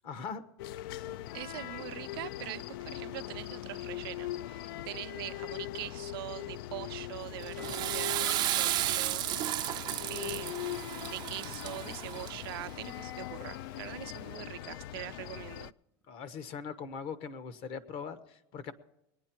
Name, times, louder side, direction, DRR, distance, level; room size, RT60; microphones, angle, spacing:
voice 1, 0.0-0.4 0.7-0.9 16.1-18.7, left 6 dB, 50° left, 1.2 m, -41 dB
sound 1, 0.6-15.7, left 13 dB, 75° left, 0.4 m, -41 dB
voice 2, 1.3-9.3 10.0-15.7, right 17 dB, 85° right, 0.5 m, -43 dB
Water / Toilet flush, 7.4-12.6, right 15 dB, 35° right, 0.4 m, -33 dB
Gurgling / Toilet flush, 7.5-13.3 15.3-15.5, left 2 dB, 15° left, 0.8 m, -51 dB
21.5 x 9.8 x 4.5 m
supercardioid pair, 145°, 12 cm